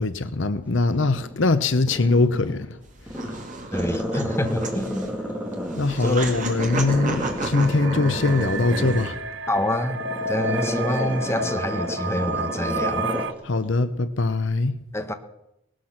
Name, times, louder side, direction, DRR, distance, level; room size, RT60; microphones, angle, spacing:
voice 1, 0.0-2.8 5.8-9.2 13.4-14.8, left 3 dB, 60° left, 0.8 m, -22 dB
Growling, 0.9-2.6 3.1-6.1 6.5-13.3 13.6-13.7, equal, 5° right, 3.0 m, -30 dB
sound 1, 2.8-9.1, right 2 dB, 35° right, 2.3 m, -31 dB
voice 2, 3.7-5.1 6.0-6.4 9.5-13.1 14.9-15.1, left 1 dB, 10° left, 1.2 m, -27 dB
sound 2, 6.2-13.3, right 2 dB, 65° right, 0.8 m, -31 dB
19.0 x 13.0 x 5.9 m
head